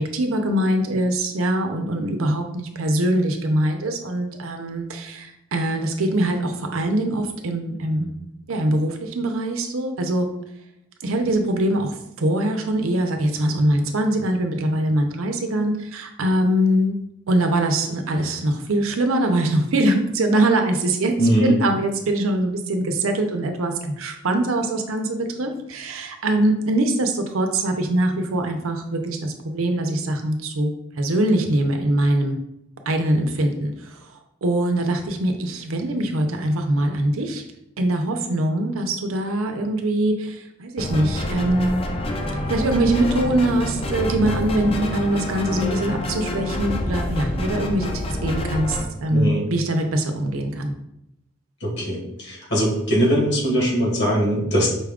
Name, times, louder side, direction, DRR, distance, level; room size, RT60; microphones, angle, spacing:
voice 1, 0.0-8.2 8.5-10.3 11.0-17.0 17.3-32.4 32.9-34.0 34.4-37.4 37.8-41.9 42.5-50.7, right 1 dB, 90° right, 4 dB, 0.6 m, -23 dB
voice 2, 21.2-21.5 49.1-49.5 51.6-54.7, equal, 55° left, -2 dB, 1.4 m, -21 dB
sound 1, 40.8-48.8, left 1 dB, 30° left, 0.5 m, -27 dB
5.4 x 2.4 x 3.5 m, 0.82 s
head